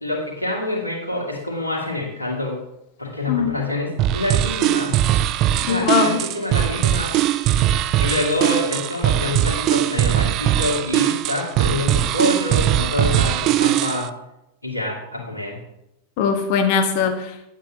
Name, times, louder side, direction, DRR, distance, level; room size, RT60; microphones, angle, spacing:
voice 1, 0.0-2.6 3.0-5.0 5.6-7.2 8.0-14.1 14.6-15.6, left 2 dB, 85° left, -1 dB, 2.3 m, -26 dB
sound 1, 4.0-14.1, right 12 dB, 35° right, 0.4 m, -20 dB
voice 2, 5.6-6.2 16.2-17.3, left 6 dB, 45° left, 7 dB, 1.2 m, -20 dB
10.0 x 8.9 x 2.8 m, 0.85 s
figure-of-eight pair, 90°, 0 cm